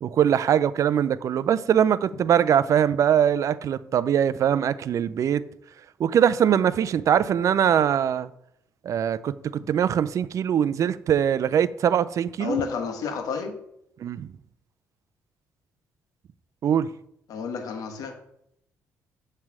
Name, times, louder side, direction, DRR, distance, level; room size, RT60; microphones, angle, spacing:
voice 1, 0.0-5.4 6.0-8.3 8.8-12.6 14.0-14.3 16.6-16.9, right 9 dB, 55° right, 0.4 m, -22 dB
voice 2, 12.4-13.6 17.3-18.1, left 6 dB, 70° left, 1.2 m, -30 dB
7.2 x 3.3 x 6.1 m
supercardioid pair, 70°, 6 cm